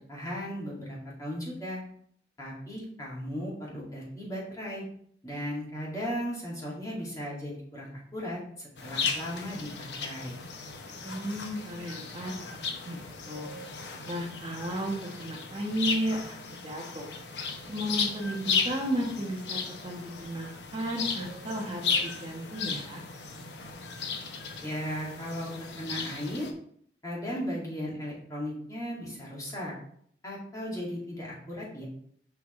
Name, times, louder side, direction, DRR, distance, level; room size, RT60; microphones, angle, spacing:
voice 1, 0.1-1.8 2.4-4.8 5.2-10.4 24.6-25.5 25.8-26.5 27.0-29.7 30.2-31.8, equal, 20° left, -5 dB, 2.4 m, -36 dB
sound 1, 8.8-26.5, left 5 dB, 80° left, 0.9 m, -35 dB
voice 2, 11.0-12.3 12.8-13.5 14.1-17.1 17.7-23.0, equal, 30° right, 0 dB, 1.2 m, -34 dB
6.9 x 5.6 x 3.2 m, 0.65 s
head